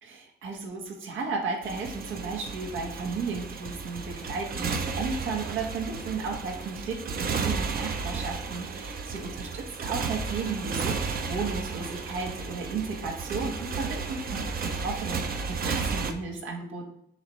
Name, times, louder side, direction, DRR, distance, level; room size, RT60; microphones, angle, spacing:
voice 1, 0.0-14.4 14.7-16.9, right 4 dB, 85° right, 1 dB, 1.5 m, -34 dB
Motorcycle, 1.6-16.1, right 4 dB, 50° right, 0.8 m, -33 dB
7.0 x 3.5 x 4.3 m, 0.74 s
cardioid pair, 90°, 20 cm